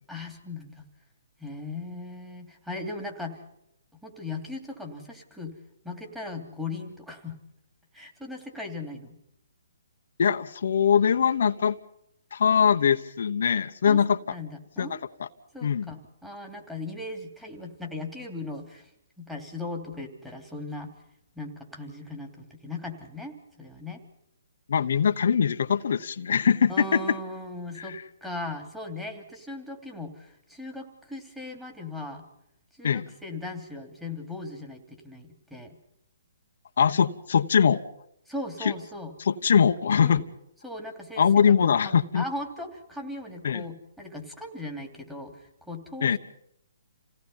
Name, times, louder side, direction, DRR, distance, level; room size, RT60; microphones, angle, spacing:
voice 1, 0.1-0.8 1.4-3.4 4.0-5.6 5.8-7.4 7.9-9.2 13.8-14.0 14.3-15.0 15.5-18.9 19.2-20.9 21.3-24.0 26.7-32.3 32.8-35.8 38.3-39.1 40.0-40.2 40.6-46.2, left 2 dB, 5° right, 0 dB, 3.0 m, -38 dB
voice 2, 10.2-11.8 12.3-14.2 14.8-15.0 15.6-15.9 24.7-27.0 27.8-27.9 32.8-33.1 36.8-37.8 39.2-40.2 41.2-42.2 43.4-43.6 46.0-46.2, left 7 dB, 65° left, 7 dB, 1.0 m, -22 dB
28.0 x 17.5 x 5.6 m, 0.77 s
hypercardioid pair, 155°, 0 cm